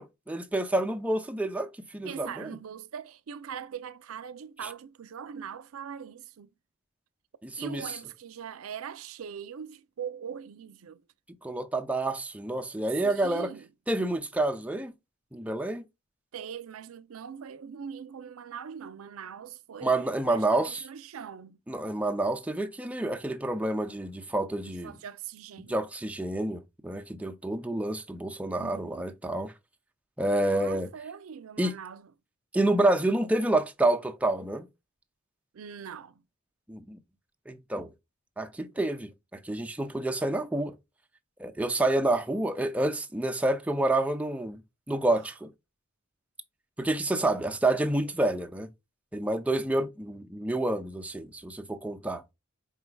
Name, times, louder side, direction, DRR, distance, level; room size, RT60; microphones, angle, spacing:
voice 1, 0.0-2.5 4.6-4.7 7.4-7.8 11.4-13.5 13.9-14.9 15.3-15.8 19.8-20.8 21.7-25.0 25.7-29.5 30.2-30.9 31.6-31.7 32.5-34.7 36.7-37.0 37.5-37.9 38.4-40.7 41.4-44.6 44.9-45.5 46.8-48.7 49.1-52.2, right 2 dB, 5° right, 0.5 m, -28 dB
voice 2, 2.0-6.5 7.6-11.0 13.0-13.7 16.3-21.6 24.7-25.7 28.6-29.1 30.5-32.1 35.5-36.2, right 7 dB, 85° right, 0.5 m, -41 dB
4.8 x 4.4 x 2.2 m
head